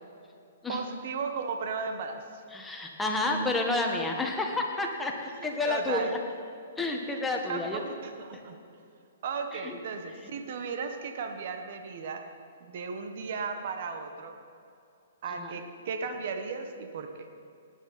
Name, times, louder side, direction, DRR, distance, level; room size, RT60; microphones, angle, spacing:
voice 1, 0.7-2.4 5.4-6.1 7.1-8.6 9.2-12.2 12.6-14.3 15.2-17.3, right 5 dB, 55° right, 6 dB, 1.4 m, -36 dB
voice 2, 2.5-5.1 5.4-6.1 6.8-7.8 9.6-9.7 15.3-15.5, left 2 dB, 10° left, 1 dB, 1.6 m, -30 dB
19.0 x 9.7 x 4.3 m, 2.6 s
figure-of-eight pair, 120°, 0 cm